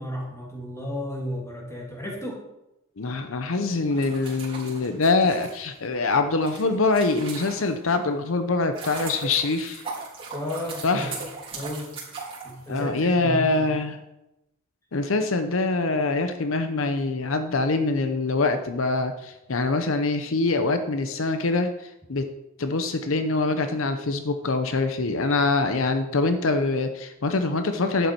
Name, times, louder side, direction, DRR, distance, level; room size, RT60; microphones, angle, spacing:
voice 1, 0.0-2.4 10.3-11.2 11.5-11.9 12.4-13.7, equal, 15° left, -1 dB, 2.6 m, -33 dB
voice 2, 3.0-9.8 10.8-11.2 12.7-14.0 14.9-22.3 22.6-28.1, left 3 dB, 75° left, 8 dB, 0.8 m, -24 dB
sound 1, 3.8-7.9 8.4-13.1, right 4 dB, 30° right, 3.3 m, -38 dB
11.0 x 8.2 x 4.6 m, 0.90 s
head